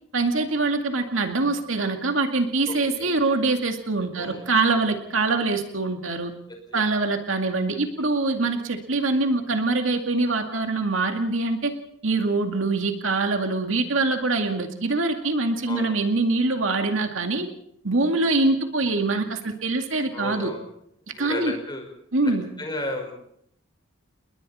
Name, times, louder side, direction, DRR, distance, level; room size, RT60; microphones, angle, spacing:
voice 1, 0.1-6.3 6.7-11.7 12.0-17.5 17.8-20.5 21.2-21.6 22.1-22.5, right 3 dB, 80° right, 5 dB, 2.2 m, -24 dB
voice 2, 2.7-3.1 4.1-4.5 6.7-6.8 15.7-16.0 20.1-20.6 21.0-21.9 22.6-23.1, left 1 dB, 20° left, 3 dB, 5.3 m, -33 dB
29.5 x 21.0 x 4.3 m, 0.73 s
head